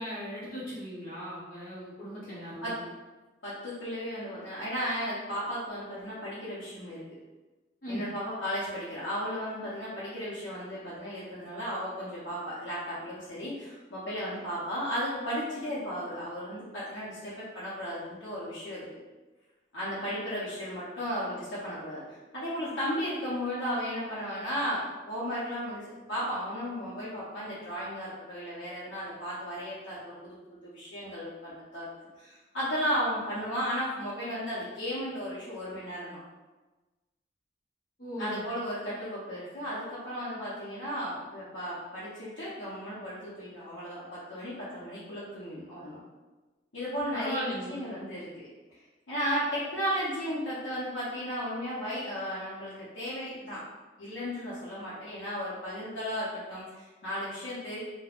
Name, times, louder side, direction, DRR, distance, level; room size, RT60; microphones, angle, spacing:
voice 1, 0.0-2.8 7.8-8.0 38.0-38.4 47.1-47.8, equal, 45° left, -8 dB, 1.0 m, -37 dB
voice 2, 3.4-7.1 7.9-18.8 19.7-30.4 30.6-36.2 38.2-46.0 46.7-48.5 49.1-53.6 54.0-57.8, equal, 85° left, -9 dB, 0.7 m, -35 dB
3.4 x 2.1 x 2.4 m, 1.2 s
head